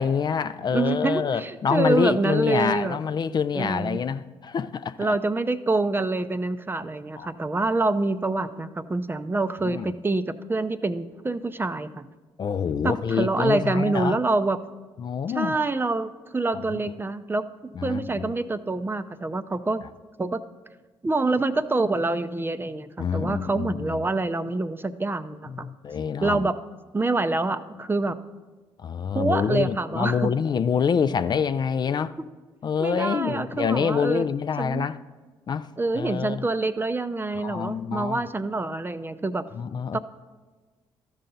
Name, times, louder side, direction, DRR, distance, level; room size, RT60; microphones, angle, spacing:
voice 1, 0.0-5.1 7.2-7.3 9.6-9.9 12.4-14.2 15.0-15.6 16.7-16.8 17.8-18.3 23.0-24.0 25.6-26.4 28.8-32.1 32.6-35.0 35.5-35.7 36.0-36.4 37.4-38.2 39.6-40.0, left 6 dB, 40° left, 12 dB, 0.4 m, -26 dB
voice 2, 0.7-3.0 3.5-4.0 5.0-12.1 12.8-14.6 15.4-19.8 20.2-20.4 21.0-25.7 26.2-26.6 26.9-28.2 29.1-30.3 32.8-34.2 34.6-34.9 35.8-39.4 39.9-40.0, right 2 dB, 20° right, 11 dB, 0.5 m, -26 dB
13.0 x 5.6 x 3.9 m, 1.3 s
supercardioid pair, 60°, 11 cm